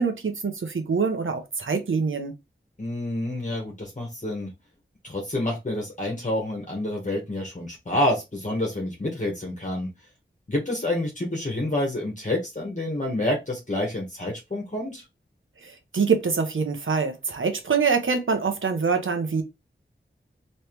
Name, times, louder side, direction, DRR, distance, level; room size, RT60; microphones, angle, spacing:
voice 1, 0.0-2.3 15.6-19.4, right 5 dB, 80° right, 0.9 m, -25 dB
voice 2, 2.8-4.5 5.0-9.9 10.5-15.0, left 1 dB, 40° left, 1.3 m, -28 dB
3.2 x 3.2 x 3.0 m
wide cardioid pair, 50°, 20 cm